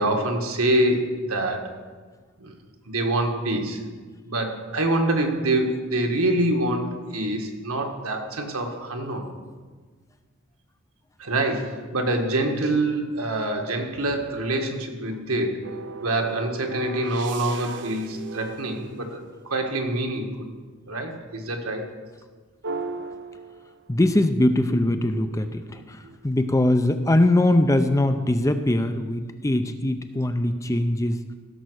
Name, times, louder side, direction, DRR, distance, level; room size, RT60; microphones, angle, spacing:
voice 1, 0.0-1.7 2.4-2.5 2.8-3.8 4.2-9.2 11.2-15.6 16.0-20.5 20.9-21.8, right 1 dB, 75° right, 3 dB, 1.7 m, -25 dB
sound 1, 15.6-19.8 22.6-24.1 24.7-26.4, right 4 dB, 55° right, 0.6 m, -38 dB
voice 2, 23.9-31.2, left 1 dB, 15° left, 8 dB, 0.5 m, -22 dB
16.0 x 6.8 x 6.3 m, 1.5 s
head